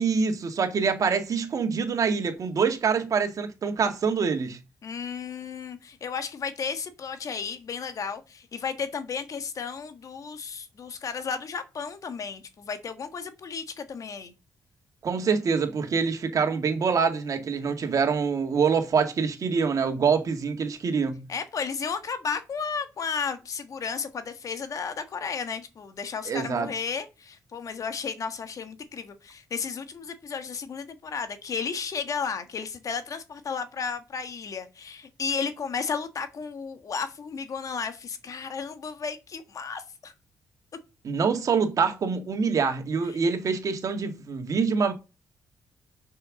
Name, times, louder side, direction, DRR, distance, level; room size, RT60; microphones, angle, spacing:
voice 1, 0.0-4.6 15.0-21.3 26.3-26.7 41.0-44.9, right 5 dB, 55° right, 2.0 m, -25 dB
voice 2, 4.8-14.3 21.3-40.1 43.1-43.2, left 6 dB, 55° left, 1.5 m, -33 dB
6.7 x 5.7 x 6.4 m
cardioid pair, 90°, 7 cm